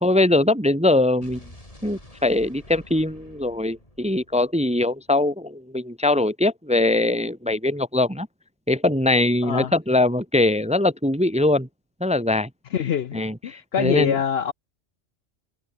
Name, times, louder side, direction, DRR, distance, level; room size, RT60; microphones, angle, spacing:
voice 1, 0.0-1.4 1.8-8.3 8.7-11.7 12.0-12.5 13.1-14.2, left 2 dB, 5° right, 0.8 m, -22 dB
Explosion, 1.2-5.3, left 1 dB, 25° left, 5.2 m, -48 dB
voice 2, 9.4-9.7 12.7-14.5, left 8 dB, 60° left, 0.8 m, -25 dB
omnidirectional pair, 1.3 m